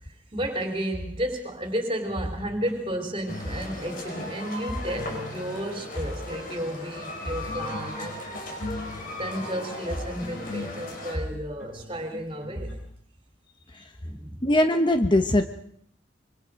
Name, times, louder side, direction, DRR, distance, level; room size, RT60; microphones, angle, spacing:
voice 1, 0.3-8.2 9.0-12.8 13.7-14.4, equal, 30° right, 5 dB, 3.9 m, -32 dB
sound 1, 2.1-3.6 3.8-5.7 6.2-6.6 7.2-12.8, left 2 dB, 65° left, 7.8 m, -41 dB
sound 2, 3.3-11.1, left 2 dB, 45° left, 4.9 m, -37 dB
voice 2, 14.4-15.5, left 1 dB, 25° left, 8 dB, 1.0 m, -20 dB
25.0 x 23.0 x 5.2 m, 0.65 s
head